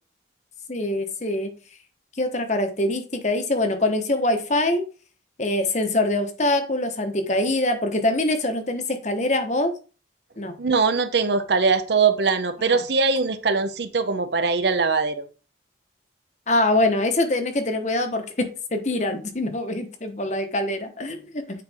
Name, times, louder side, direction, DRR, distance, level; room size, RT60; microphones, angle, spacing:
voice 1, 0.7-1.5 2.2-4.8 5.4-9.7 10.4-10.5 12.7-12.8 16.5-21.4, left 1 dB, 40° left, 1.1 m, -24 dB
voice 2, 10.6-15.2, right 4 dB, 70° right, 0.8 m, -21 dB
9.2 x 4.7 x 3.5 m
head